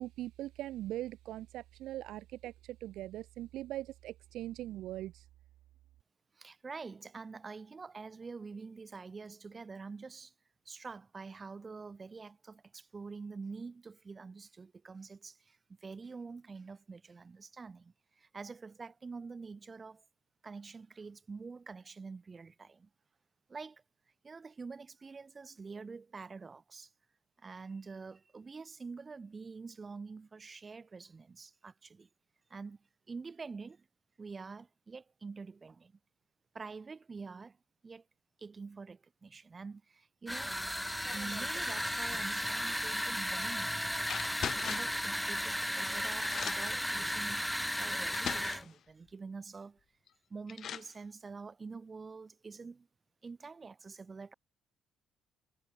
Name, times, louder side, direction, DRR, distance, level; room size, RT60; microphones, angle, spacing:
voice 1, 0.0-5.3, right 14 dB, 70° right, 1.7 m, -41 dB
voice 2, 6.3-10.3 10.6-20.0 20.4-22.9 23.5-23.8 24.2-26.9 27.4-32.1 32.5-32.8 33.1-33.9 34.2-35.9 36.5-37.6 37.8-38.0 38.4-40.6 41.1-44.0 44.6-47.4 47.8-49.8 50.3-52.9 53.2-54.3, right 4 dB, 35° right, 6.2 m, -46 dB
sound 1, 40.3-48.6, equal, 5° left, 1.9 m, -35 dB
sound 2, 43.3-43.6 44.0-45.0 45.8-45.9 46.2-46.8 47.6-47.7 48.1-48.7 50.1-50.2 50.5-50.9, left 9 dB, 60° left, 1.1 m, -40 dB
hypercardioid pair, 55°, 0 cm